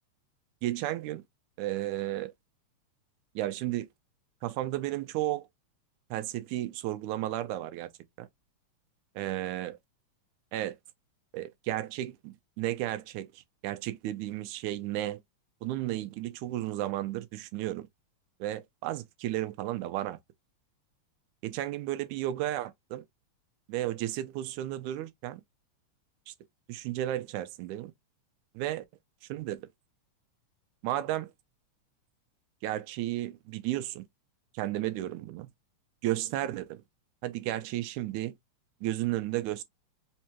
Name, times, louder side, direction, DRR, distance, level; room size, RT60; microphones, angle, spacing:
voice 1, 0.6-1.2 1.6-2.3 3.4-3.9 4.4-5.5 6.1-7.9 8.2-8.3 9.2-9.8 10.5-10.8 11.3-15.2 15.6-17.9 18.4-20.2 21.4-23.0 23.7-25.4 26.3-26.4 26.7-27.9 28.6-28.8 29.3-29.7 30.8-31.3 32.6-34.0 34.5-35.5 36.0-36.8 37.2-38.4 38.8-39.6, right 14 dB, 90° right, 2.0 m, -33 dB
5.2 x 2.2 x 2.9 m
omnidirectional pair, 3.3 m